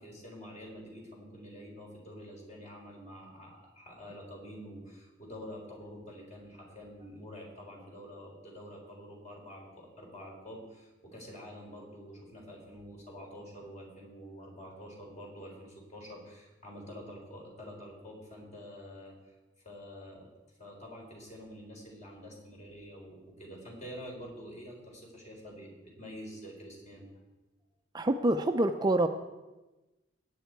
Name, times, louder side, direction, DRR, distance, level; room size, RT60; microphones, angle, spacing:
voice 1, 0.0-19.4 19.6-20.3 20.6-27.1, equal, 40° left, -1 dB, 4.1 m, -47 dB
voice 2, 27.9-29.1, right 1 dB, 20° right, 6 dB, 0.5 m, -26 dB
20.0 x 9.1 x 4.6 m, 1.1 s
head